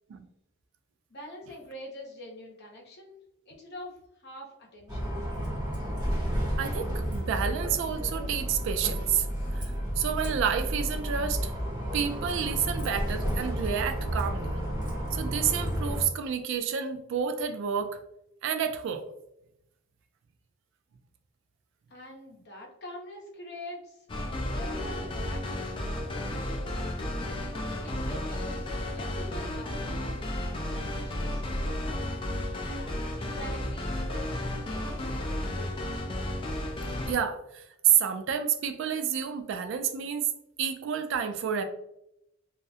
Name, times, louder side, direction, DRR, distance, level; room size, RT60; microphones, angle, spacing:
voice 1, 1.1-3.2 3.5-5.2 21.9-26.9 27.5-30.1 30.4-31.4 32.5-34.4 34.7-35.9, left 1 dB, 55° left, -1 dB, 0.7 m, -45 dB
Bus, 4.9-16.0, equal, 20° right, 0.8 m, -31 dB
voice 2, 6.6-9.3 9.6-11.5 11.9-14.6 15.1-18.0 18.4-19.1 37.1-40.3 40.6-41.6, right 8 dB, 65° right, 8 dB, 0.3 m, -29 dB
sound 1, 24.1-37.1, left 1 dB, 25° left, 0.3 m, -33 dB
2.4 x 2.0 x 2.6 m, 0.82 s
head